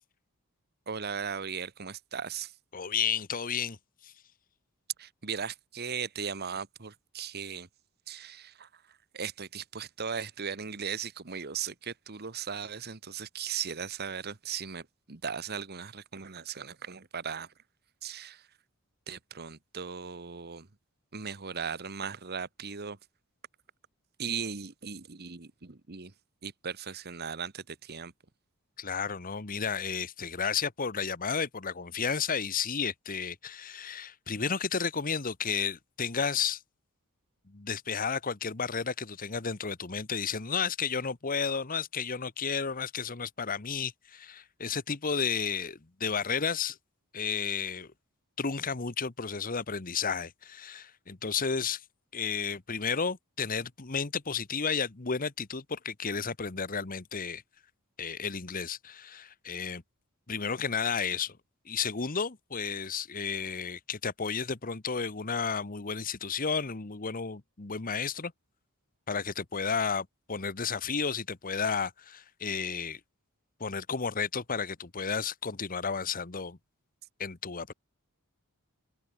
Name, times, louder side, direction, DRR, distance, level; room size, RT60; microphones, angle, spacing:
voice 1, 0.9-2.5 5.0-7.7 8.1-8.8 9.1-17.5 18.0-18.5 19.1-20.7 21.1-23.0 24.2-26.1 26.4-28.1, right 6 dB, 45° right, 1.2 m, -38 dB
voice 2, 2.7-3.8 4.0-4.1 28.8-36.6 37.5-46.8 47.1-47.9 48.4-51.8 52.1-57.4 58.0-59.8 60.3-61.4 61.7-68.3 69.1-73.0 73.6-76.6 77.2-77.7, left 6 dB, 40° left, 1.1 m, -32 dB
head